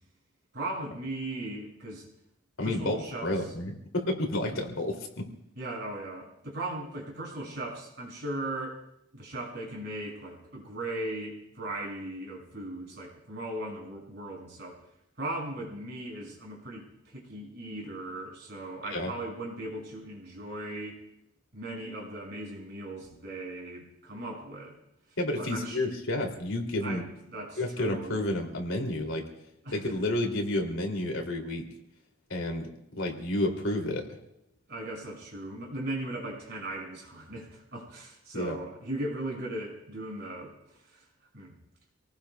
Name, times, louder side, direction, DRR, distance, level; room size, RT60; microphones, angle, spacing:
voice 1, 0.5-2.0 2.6-3.3 5.6-8.8 9.1-14.8 15.2-21.0 21.5-24.7 25.4-25.8 26.8-28.2 29.6-29.8 34.7-41.0 41.3-41.6, right 1 dB, 55° right, -3 dB, 6.0 m, -38 dB
voice 2, 2.6-5.3 18.9-19.1 25.2-27.1 27.6-29.3 29.7-31.6 32.3-32.7 33.0-34.1 38.3-38.6, left 1 dB, 75° left, 2 dB, 2.7 m, -30 dB
28.0 x 18.5 x 2.3 m, 0.78 s
head